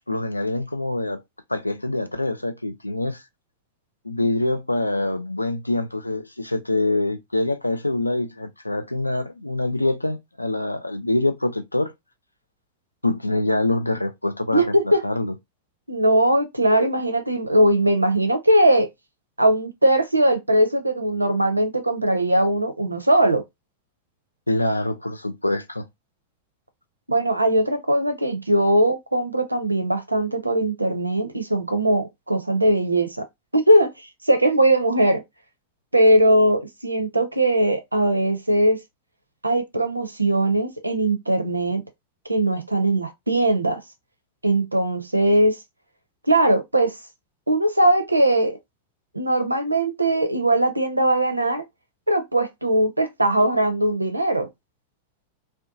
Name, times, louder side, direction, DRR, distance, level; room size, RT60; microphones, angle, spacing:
voice 1, 0.1-1.2 1.5-3.2 4.0-11.9 13.0-14.7 15.0-15.3 24.5-25.9, left 2 dB, 85° left, 0.3 m, -25 dB
voice 2, 14.5-15.0 15.9-18.9 19.4-23.4 27.1-33.3 33.5-35.2 35.9-38.8 39.4-41.8 42.3-43.8 44.4-45.6 46.3-47.0 47.5-48.6 49.1-51.6 52.1-54.5, right 1 dB, 85° right, 0.4 m, -20 dB
2.6 x 2.2 x 2.5 m
figure-of-eight pair, 90°, 0 cm